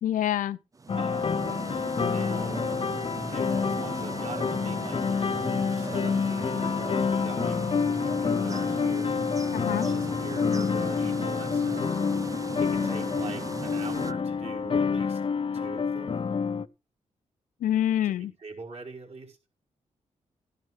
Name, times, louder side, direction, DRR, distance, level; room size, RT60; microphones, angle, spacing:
voice 1, 0.0-0.6 9.5-9.9 17.6-18.3, left 11 dB, 90° left, 0.6 m, -26 dB
sound 1, 0.7-14.1, right 3 dB, 25° right, 0.6 m, -38 dB
sound 2, 0.9-16.7, left 5 dB, 40° left, 0.6 m, -28 dB
voice 2, 0.9-1.4 1.9-2.7 3.3-7.6 8.0-11.9 12.6-15.2 15.5-16.2 18.0-18.1 18.4-19.4, right 4 dB, 55° right, 5.0 m, -43 dB
14.5 x 11.0 x 3.3 m
cardioid pair, 70°, 13 cm